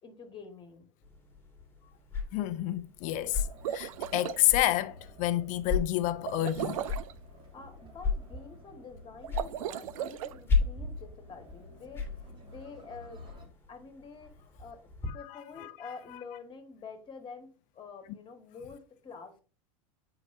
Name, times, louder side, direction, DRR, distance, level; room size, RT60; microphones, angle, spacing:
voice 1, 0.0-0.9 7.3-14.9 15.1-19.4, left 5 dB, 30° left, 1.8 m, -48 dB
sound 1, 1.0-15.1, left 4 dB, 10° left, 2.1 m, -36 dB
voice 2, 2.3-3.4 3.7-6.8 15.6-15.7, left 14 dB, 45° left, 0.6 m, -29 dB
sound 2, 3.1-13.5, equal, 30° right, 2.7 m, -53 dB
sound 3, 3.5-4.4 6.2-7.1 9.2-10.3, right 11 dB, 75° right, 0.5 m, -36 dB
8.4 x 4.9 x 2.7 m
hypercardioid pair, 100°, 18 cm